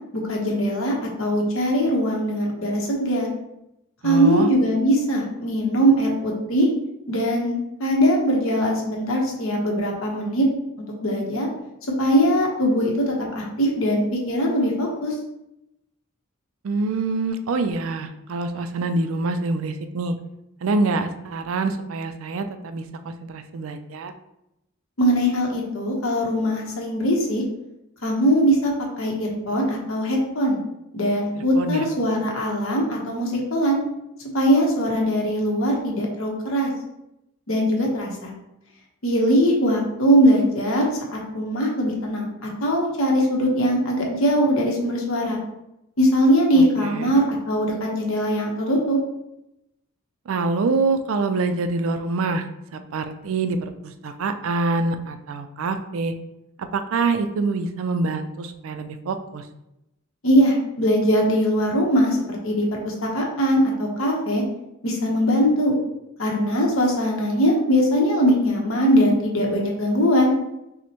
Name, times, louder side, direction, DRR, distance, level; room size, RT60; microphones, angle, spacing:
voice 1, 0.3-3.3 4.0-6.7 7.1-10.5 11.0-11.5 12.0-15.1 25.0-27.4 28.0-30.6 30.9-33.8 34.3-36.7 37.5-38.3 39.0-40.9 41.1-45.4 46.0-49.0 60.2-64.4 64.8-65.7 66.2-70.3, equal, 70° left, -1 dB, 1.0 m, -21 dB
voice 2, 4.0-4.5 16.6-20.2 20.6-24.1 31.5-31.9 46.6-47.2 50.3-52.5 52.7-56.1 56.6-59.5, right 3 dB, 70° right, 9 dB, 0.4 m, -25 dB
5.9 x 2.1 x 2.9 m, 0.87 s
head